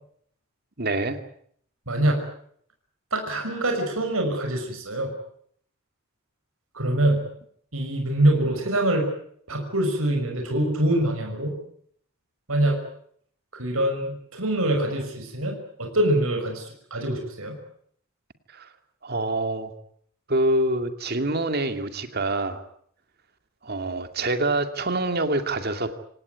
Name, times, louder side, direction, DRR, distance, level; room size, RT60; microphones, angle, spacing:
voice 1, 0.8-1.2 18.5-18.7 19.0-19.7 20.3-22.6 23.6-25.9, right 2 dB, 45° right, 8 dB, 2.4 m, -26 dB
voice 2, 1.9-2.2 3.1-5.1 6.7-7.2 7.7-9.1 9.5-11.6 12.5-12.8 13.5-17.5, right 1 dB, 75° right, 3 dB, 6.0 m, -24 dB
27.0 x 18.5 x 9.4 m, 0.65 s
head